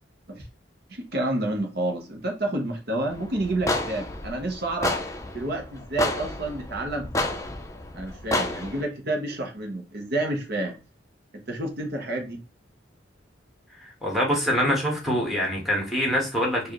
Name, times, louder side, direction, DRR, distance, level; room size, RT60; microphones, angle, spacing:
voice 1, 0.9-5.0 5.3-7.2 7.9-10.7 11.5-12.4, right 2 dB, 60° right, 3 dB, 1.1 m, -29 dB
sound 1, 3.1-8.8, left 2 dB, 15° left, 0.5 m, -30 dB
voice 2, 14.0-16.7, equal, ahead, -1 dB, 1.4 m, -24 dB
4.6 x 2.7 x 3.0 m, 0.30 s
head